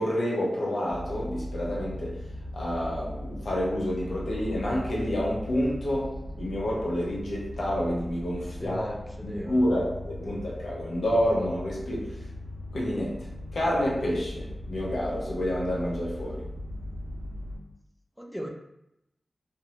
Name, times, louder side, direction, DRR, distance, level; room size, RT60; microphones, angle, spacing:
voice 1, 0.0-2.2 2.5-8.9 9.2-12.1 12.7-13.3 13.5-16.5, equal, 85° left, -4 dB, 0.7 m, -29 dB
sound 1, 0.9-17.6, left 1 dB, 90° right, 0.5 m, -38 dB
voice 2, 8.6-9.7 10.2-10.4 18.2-18.5, equal, ahead, 1 dB, 0.4 m, -37 dB
2.6 x 2.1 x 2.7 m, 0.84 s
wide cardioid pair, 60°, 0 cm